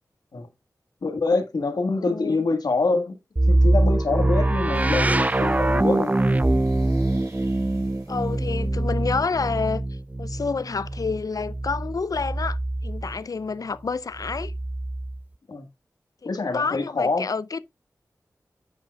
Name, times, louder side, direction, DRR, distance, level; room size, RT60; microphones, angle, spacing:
voice 1, 1.0-3.2 3.5-6.2 15.5-15.7 16.2-17.3, left 3 dB, 80° left, 1.5 m, -25 dB
voice 2, 2.0-2.5 8.1-9.8 10.2-14.5 16.2-17.6, left 4 dB, 65° left, 0.4 m, -29 dB
sound 1, 3.4-13.2 14.2-15.2, right 2 dB, 20° right, 0.4 m, -23 dB
sound 2, 4.7-9.1, right 2 dB, 60° right, 4.4 m, -51 dB
10.0 x 7.4 x 2.3 m
cardioid pair, 40°, 7 cm